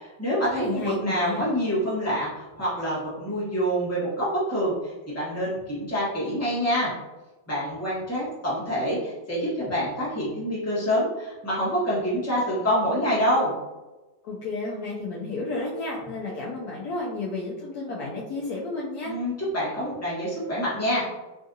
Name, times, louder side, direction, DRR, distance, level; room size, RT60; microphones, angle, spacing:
voice 1, 0.0-6.9 7.5-13.5 19.0-21.0, equal, 10° left, -9 dB, 1.1 m, -26 dB
voice 2, 0.6-1.5 14.2-19.1, left 3 dB, 70° left, -5 dB, 1.0 m, -32 dB
3.5 x 2.4 x 2.6 m, 1.1 s
omnidirectional pair, 1.9 m